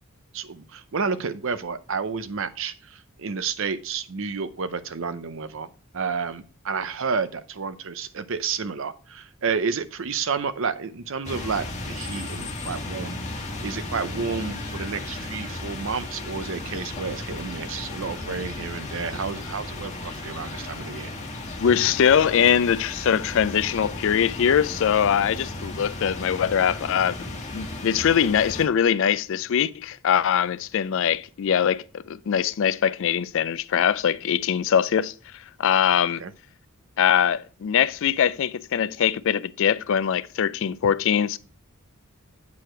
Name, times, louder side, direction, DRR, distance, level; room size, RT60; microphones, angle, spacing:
voice 1, 0.3-5.7 5.9-21.1 36.2-36.3, right 5 dB, 60° right, 0.6 m, -30 dB
sound 1, 11.2-28.7, left 2 dB, 35° left, 1.4 m, -35 dB
voice 2, 21.6-27.1 27.5-36.2 37.0-41.4, left 8 dB, 60° left, 0.4 m, -22 dB
8.4 x 4.9 x 4.4 m
head